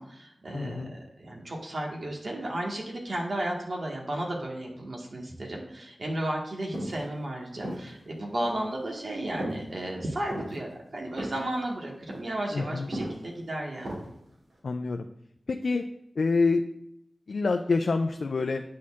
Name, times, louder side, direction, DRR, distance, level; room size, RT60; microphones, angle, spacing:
voice 1, 0.0-14.0, right 1 dB, 65° right, -1 dB, 1.5 m, -34 dB
voice 2, 0.5-0.9 12.5-12.9 14.6-15.1 15.5-15.8 16.2-16.6 17.3-18.6, left 3 dB, 75° left, 5 dB, 0.3 m, -26 dB
sound 1, 6.7-7.0 7.6-8.0 8.4-8.7 9.4-9.7 10.2-10.6 11.2-11.6 11.9-12.2 12.9-13.3 13.8-14.2 14.5-14.6, right 1 dB, 85° right, 2.5 m, -35 dB
9.3 x 4.3 x 2.4 m, 0.77 s
cardioid pair, 40°, 0 cm